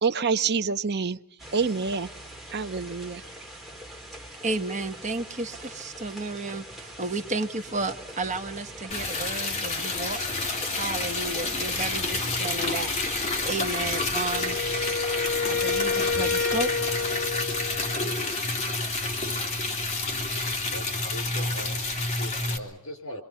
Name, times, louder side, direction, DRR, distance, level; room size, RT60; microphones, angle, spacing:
voice 1, 0.0-1.2 1.5-2.1 2.5-3.2, right 5 dB, 50° right, 10 dB, 0.8 m, -26 dB
sound 1, 1.4-15.4, right 1 dB, ahead, 3.4 m, -42 dB
voice 2, 4.4-14.6 15.4-17.0, right 2 dB, 35° right, 6 dB, 1.3 m, -33 dB
Liquid, 8.9-22.6, left 2 dB, 30° left, 2.9 m, -29 dB
Wind instrument woodwind instrument, 14.3-18.2, left 4 dB, 50° left, 1.2 m, -29 dB
voice 3, 20.4-23.2, equal, 80° left, 6 dB, 4.7 m, -41 dB
27.5 x 24.0 x 5.6 m, 0.76 s
head